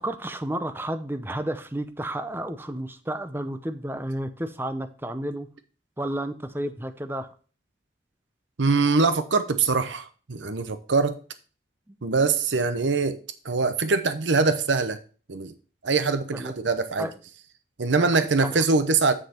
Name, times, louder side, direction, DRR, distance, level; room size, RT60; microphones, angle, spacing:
voice 1, 0.0-5.5 6.0-7.3 11.9-12.0 16.3-16.5 17.0-17.1 18.0-18.1 18.4-18.6, right 1 dB, 10° right, 0.6 m, -31 dB
voice 2, 8.6-11.2 12.0-13.2 13.4-15.0 15.3-15.5 15.8-17.1 17.8-19.1, right 4 dB, 85° right, 0.8 m, -23 dB
7.5 x 6.4 x 4.3 m
head